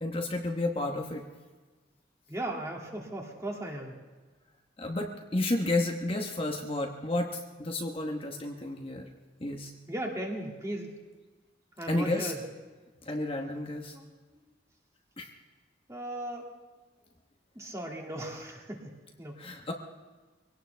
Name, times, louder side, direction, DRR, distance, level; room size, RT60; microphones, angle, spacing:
voice 1, 0.0-1.2 4.8-9.1 9.4-9.7 11.9-12.3 13.0-13.9 15.2-15.3 19.4-19.7, left 2 dB, 30° left, 2 dB, 1.1 m, -31 dB
voice 2, 2.3-4.0 9.9-10.9 11.8-12.4 13.9-14.1 14.3-14.4 15.9-16.5 17.6-19.4, right 1 dB, 15° right, 0 dB, 2.3 m, -37 dB
23.5 x 17.5 x 3.4 m, 1.3 s
head